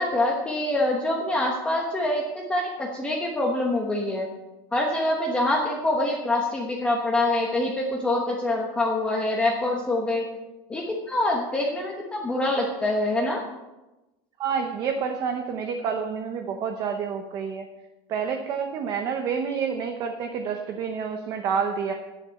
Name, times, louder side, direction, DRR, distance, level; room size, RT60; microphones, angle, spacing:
voice 1, 0.0-4.3 4.7-10.3 10.7-13.4, left 1 dB, 10° left, -2 dB, 1.1 m, -25 dB
voice 2, 14.4-17.7 18.1-21.9, right 6 dB, 30° right, 4 dB, 0.9 m, -28 dB
11.5 x 10.0 x 5.7 m, 1.0 s
cardioid pair, 180°, 13 cm